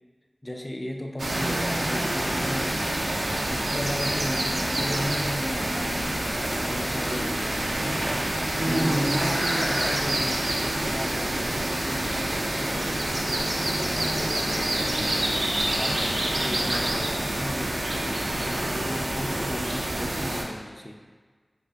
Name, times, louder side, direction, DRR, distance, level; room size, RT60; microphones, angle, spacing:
voice 1, 0.4-8.3 8.6-21.0, left 1 dB, 25° left, 3 dB, 0.3 m, -36 dB
sound 1, 1.2-20.4, right 1 dB, 75° right, 0.4 m, -27 dB
2.6 x 2.4 x 3.3 m, 1.5 s
wide cardioid pair, 45°, 0 cm